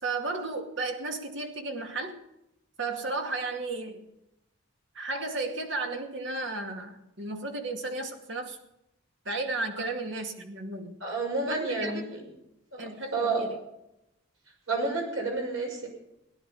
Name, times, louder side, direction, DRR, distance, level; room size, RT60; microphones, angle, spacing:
voice 1, 0.0-2.2 2.8-4.0 4.9-8.6 9.3-11.0 11.5-12.0 12.8-13.5, right 3 dB, 65° right, 4 dB, 2.4 m, -34 dB
voice 2, 11.0-12.2 12.7-12.8 13.1-13.4 14.7-15.9, right 3 dB, 80° right, 0 dB, 6.1 m, -30 dB
17.5 x 11.0 x 5.5 m, 0.82 s
head